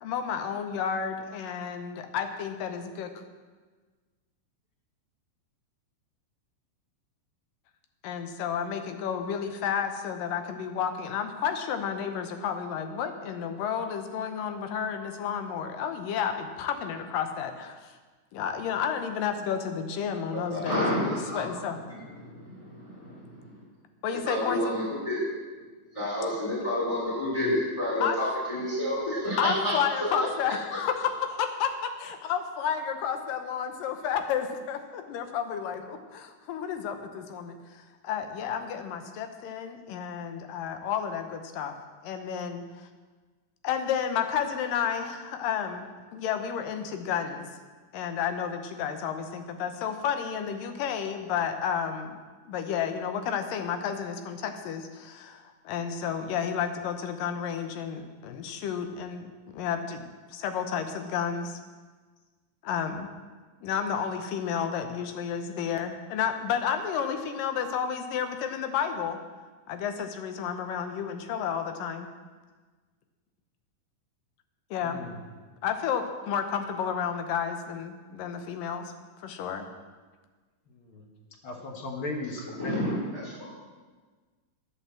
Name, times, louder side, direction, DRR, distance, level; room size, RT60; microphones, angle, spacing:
voice 1, 0.0-3.1 8.0-17.9 18.3-21.8 24.0-24.8 28.0-28.2 29.4-41.7 42.0-42.9 43.6-45.9 46.1-47.5 47.9-52.2 52.5-61.6 62.6-63.1 63.6-69.2 69.7-72.1 74.7-75.1 75.6-78.9 79.2-79.7, left 7 dB, 80° left, 7 dB, 2.6 m, -31 dB
voice 2, 20.3-21.4 22.4-23.2 24.1-25.3 25.9-29.6 30.0-30.3 82.6-83.4, left 1 dB, 10° left, -7 dB, 3.9 m, -29 dB
voice 3, 81.4-82.8, left 2 dB, 55° left, 1 dB, 1.6 m, -36 dB
10.5 x 9.0 x 7.4 m, 1.4 s
omnidirectional pair, 4.0 m